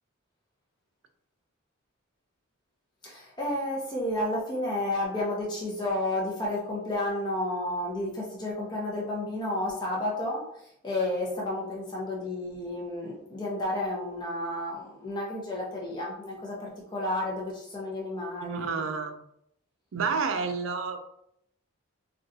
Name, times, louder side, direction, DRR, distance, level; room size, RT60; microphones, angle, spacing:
voice 1, 3.0-18.8, left 1 dB, 20° left, -4 dB, 0.5 m, -31 dB
voice 2, 18.4-19.2 19.9-21.0, right 5 dB, 65° right, 6 dB, 0.4 m, -30 dB
3.8 x 2.2 x 2.6 m, 0.73 s
head